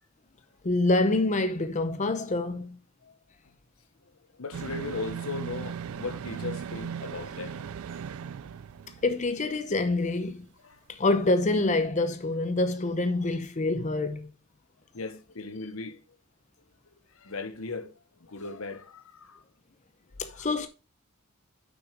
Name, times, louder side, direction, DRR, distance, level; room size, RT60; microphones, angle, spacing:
voice 1, 0.6-2.8 9.0-10.4 10.9-14.3 20.2-20.7, left 2 dB, 35° left, 0.7 m, -26 dB
voice 2, 4.4-7.7 10.6-10.8 14.9-16.0 17.1-17.9 18.2-19.4 20.3-20.5, left 3 dB, 75° left, 1.0 m, -38 dB
sound 1, 4.5-9.5 9.8-9.9, right 7 dB, 80° right, 0.4 m, -38 dB
6.8 x 6.2 x 5.1 m
head